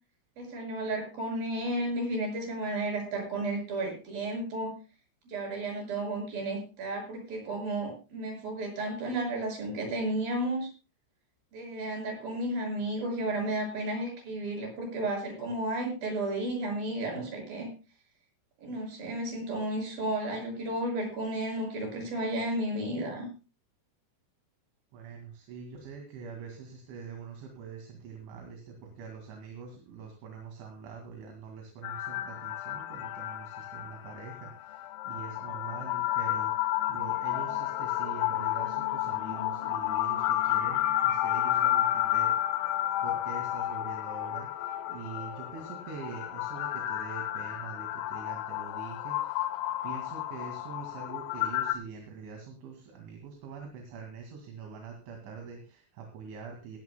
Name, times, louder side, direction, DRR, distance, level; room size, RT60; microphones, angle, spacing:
voice 1, 0.4-4.7 5.3-10.7 11.5-17.7 18.6-23.3, right 1 dB, 45° right, 1 dB, 7.8 m, -33 dB
voice 2, 24.9-42.4 43.0-49.4 49.8-56.8, right 5 dB, 65° right, 2 dB, 4.3 m, -44 dB
sound 1, 31.8-51.8, left 13 dB, 85° left, 4.0 m, -31 dB
18.0 x 17.0 x 2.2 m, 0.32 s
omnidirectional pair, 6.0 m